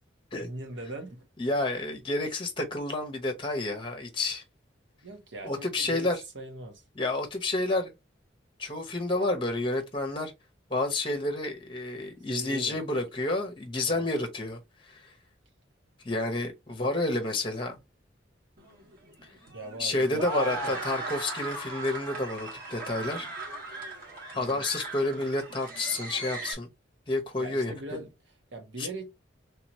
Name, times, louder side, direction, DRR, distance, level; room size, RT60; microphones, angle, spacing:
voice 1, 0.4-1.3 5.0-6.1 6.3-6.8 12.3-13.1 13.8-14.1 19.5-20.8 24.3-24.7 27.4-28.1 28.5-29.1, right 2 dB, 80° right, 1.2 m, -40 dB
voice 2, 1.4-4.4 5.4-6.2 7.0-7.9 8.6-10.3 10.7-15.1 16.0-17.7 19.8-23.3 23.7-23.9 24.3-26.7 27.1-27.7 28.8-28.9, left 2 dB, 25° left, 0.9 m, -30 dB
sound 1, 18.6-26.5, right 2 dB, 50° right, 1.7 m, -38 dB
3.4 x 3.0 x 3.0 m
head